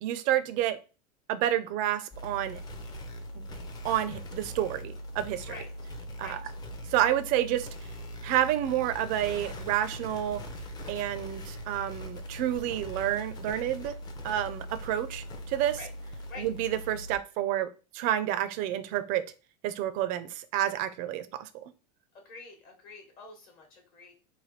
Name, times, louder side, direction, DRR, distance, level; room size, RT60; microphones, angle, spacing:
voice 1, 0.0-0.8 1.3-2.6 3.4-3.5 3.8-5.5 6.2-6.4 6.9-7.7 8.2-10.4 10.9-13.9 14.2-15.8 16.4-17.7 17.9-19.2 19.6-21.7, right 12 dB, 40° right, 0.4 m, -29 dB
sound 1, 2.1-17.2, equal, 20° left, 0.5 m, -41 dB
voice 2, 22.1-24.1, left 3 dB, 45° left, 1.0 m, -46 dB
3.2 x 2.2 x 3.0 m
supercardioid pair, 140°, 21 cm